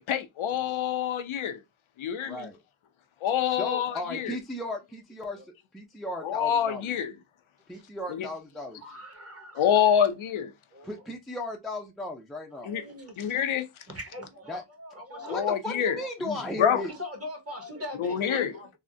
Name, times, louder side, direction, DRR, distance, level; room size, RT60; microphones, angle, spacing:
voice 1, 0.0-1.6 2.0-2.3 3.2-4.4 6.2-7.1 8.1-8.3 9.6-10.5 12.6-12.8 13.2-13.7 15.3-16.0 16.2-16.8 18.0-18.5, left 9 dB, 90° left, 0.6 m, -26 dB
voice 2, 3.6-5.4 5.7-7.0 7.7-8.8 10.8-12.7 14.5-14.6 15.2-16.9, left 1 dB, ahead, 0.4 m, -35 dB
voice 3, 8.7-9.6 10.7-11.0 12.5-13.4 13.9-16.1 16.8-18.7, left 1 dB, 30° right, 1.2 m, -42 dB
3.6 x 2.1 x 2.5 m
wide cardioid pair, 75°, 47 cm